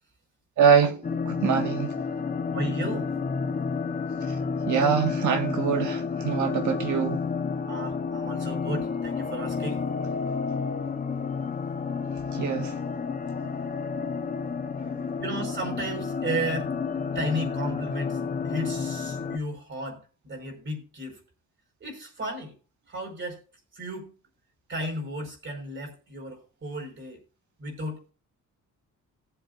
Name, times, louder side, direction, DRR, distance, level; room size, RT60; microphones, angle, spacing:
voice 1, 0.6-1.0 1.2-2.0 4.7-7.2 12.3-12.8 13.4-13.5, right 7 dB, 70° right, 1.8 m, -24 dB
sound 1, 1.0-19.4, left 5 dB, 25° left, 0.9 m, -30 dB
voice 2, 2.5-3.1 7.7-9.8 15.2-16.7 17.1-21.2 21.8-22.5 22.9-23.4 23.7-24.1 24.7-27.2 27.6-28.1, right 1 dB, 40° right, 5.1 m, -34 dB
18.5 x 7.9 x 2.6 m
cardioid pair, 135°, 31 cm